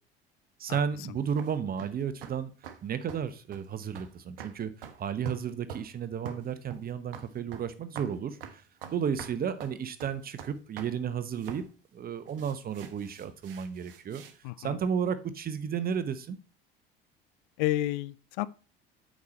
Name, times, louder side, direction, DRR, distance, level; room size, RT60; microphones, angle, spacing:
voice 1, 0.6-2.5 2.8-8.6 8.9-11.6 11.9-14.2 14.6-16.4, right 7 dB, 30° right, 1.0 m, -33 dB
sound 1, 1.3-1.9 2.2-2.4 2.6-2.8 3.1-3.3 3.5-3.7 4.0-4.1 4.4-5.0 5.3-5.9 6.3-7.7 8.0-8.2 8.4-10.9 11.4-11.7 12.3-14.4, right 7 dB, 70° right, 1.0 m, -44 dB
voice 2, 14.4-14.8 17.6-18.5, left 15 dB, 55° left, 0.5 m, -30 dB
8.5 x 6.3 x 4.2 m
figure-of-eight pair, 60°, 29 cm